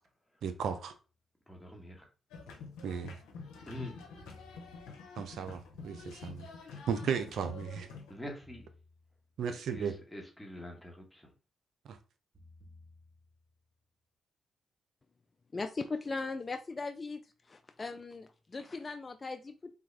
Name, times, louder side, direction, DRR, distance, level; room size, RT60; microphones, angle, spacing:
voice 1, 0.4-0.9 2.8-3.2 5.2-6.5 6.9-7.9 9.4-9.9 11.9-12.0, right 7 dB, 75° right, 0.4 m, -35 dB
sound 1, 1.1-1.2 3.6-5.3 8.4-9.5 12.3-13.7, left 2 dB, 40° right, 1.5 m, -59 dB
voice 2, 1.5-2.1 3.7-4.0 8.1-8.7 9.5-11.3, left 1 dB, 10° left, 1.1 m, -45 dB
sound 2, 2.3-8.2, left 4 dB, 90° left, 0.6 m, -48 dB
voice 3, 15.5-17.2 17.5-19.7, left 3 dB, 40° left, 0.3 m, -39 dB
3.4 x 2.2 x 3.2 m
supercardioid pair, 45°, 0 cm